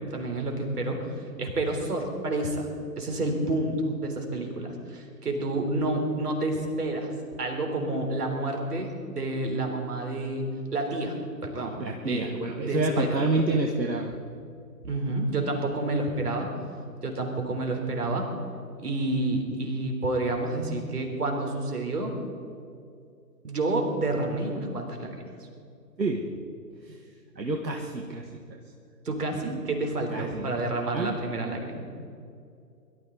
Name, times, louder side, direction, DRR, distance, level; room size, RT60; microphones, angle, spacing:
voice 1, 0.1-2.7 3.0-7.1 7.4-11.2 11.4-11.8 12.1-12.3 12.6-13.2 14.8-16.5 17.0-18.3 18.8-22.2 23.4-25.2 29.0-31.8, right 2 dB, 65° right, 3 dB, 3.9 m, -29 dB
voice 2, 11.8-14.1 26.0-26.3 26.9-27.0 27.4-28.6 30.1-30.5 30.9-31.1, right 2 dB, 85° right, 2 dB, 1.7 m, -28 dB
22.5 x 13.0 x 4.0 m, 2.4 s
figure-of-eight pair, 140°, 49 cm